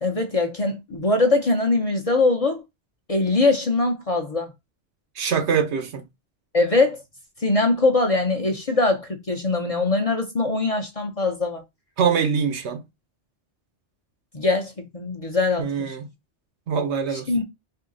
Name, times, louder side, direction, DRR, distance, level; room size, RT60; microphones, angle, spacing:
voice 1, 0.0-2.6 3.1-4.5 6.5-7.0 7.4-11.6 14.3-16.0 17.3-17.4, left 3 dB, 40° left, 0.6 m, -22 dB
voice 2, 5.2-6.0 12.0-12.8 15.6-16.1 16.7-17.3, right 6 dB, 75° right, 1.1 m, -23 dB
2.8 x 2.7 x 3.8 m
omnidirectional pair, 1.2 m